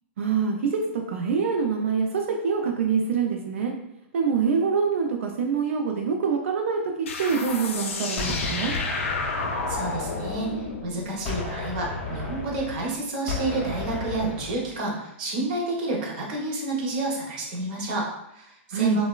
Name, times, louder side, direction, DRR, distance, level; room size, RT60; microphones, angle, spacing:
voice 1, 0.2-3.7 4.1-8.7 18.7-19.0, right 6 dB, 80° right, 2 dB, 0.3 m, -25 dB
sound 1, 7.1-12.3, left 4 dB, 85° left, 0.5 m, -32 dB
Gunshot gunfire, 8.2-10.9 11.2-14.8, left 3 dB, 20° left, 0.4 m, -33 dB
voice 2, 9.7-19.1, right 2 dB, 40° right, -1 dB, 0.6 m, -29 dB
3.0 x 2.0 x 2.2 m, 0.80 s
hypercardioid pair, 170°, 7 cm